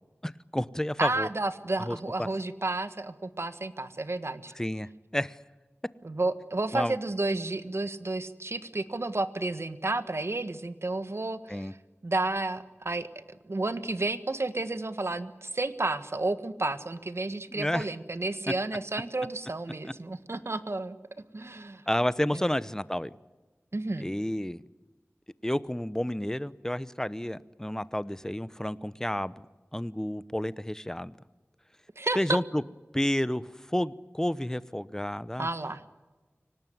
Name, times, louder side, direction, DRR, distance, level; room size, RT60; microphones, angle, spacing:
voice 1, 0.2-1.3 1.8-2.3 4.6-5.4 6.7-7.0 11.5-11.7 17.5-17.9 21.9-23.1 24.0-24.6 25.4-29.5 29.7-31.1 32.2-32.6 32.9-35.5, left 1 dB, 10° left, 17 dB, 0.9 m, -30 dB
voice 2, 1.0-4.5 6.0-11.8 12.0-13.1 13.4-21.0 21.3-21.8 22.3-22.4 23.7-24.1 32.0-32.4 35.4-35.8, right 2 dB, 65° right, 11 dB, 1.6 m, -31 dB
25.0 x 18.5 x 9.5 m, 1.2 s
wide cardioid pair, 45°, 5 cm